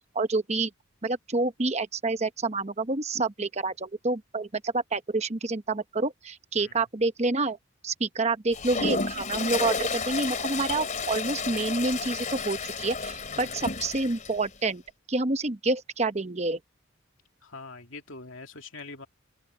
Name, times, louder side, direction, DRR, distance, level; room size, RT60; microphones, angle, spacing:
voice 1, 0.1-0.7 1.0-7.6 7.8-14.8 15.1-16.6, right 3 dB, 30° right, 0.9 m, -28 dB
Toilet flush, 8.5-14.3, left 4 dB, 35° left, 3.4 m, -31 dB
voice 2, 17.4-19.1, left 3 dB, 65° left, 2.5 m, -43 dB
head